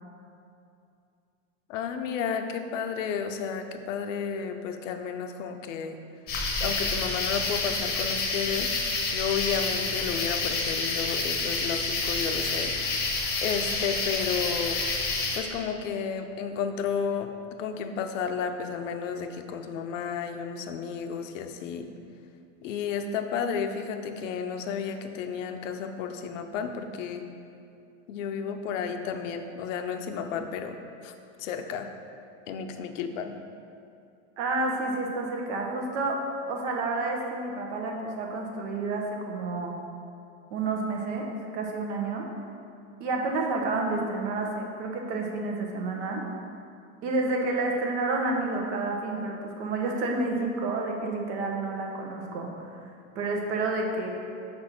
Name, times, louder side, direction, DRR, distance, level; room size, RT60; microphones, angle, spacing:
voice 1, 1.7-6.0 6.6-8.8 9.1-13.0 13.4-14.8 15.1-17.3 17.6-21.9 22.6-27.2 28.1-30.8 31.0-31.1 31.4-31.9 32.5-33.3, left 6 dB, 90° left, 6 dB, 0.7 m, -32 dB
sound 1, 6.3-15.4, left 3 dB, 25° left, 0.8 m, -28 dB
voice 2, 34.4-36.2 36.5-39.7 40.5-42.3 43.0-46.2 47.0-52.7 53.1-54.1, right 3 dB, 70° right, 1 dB, 1.2 m, -30 dB
5.3 x 4.3 x 5.9 m, 2.5 s
supercardioid pair, 160°, 37 cm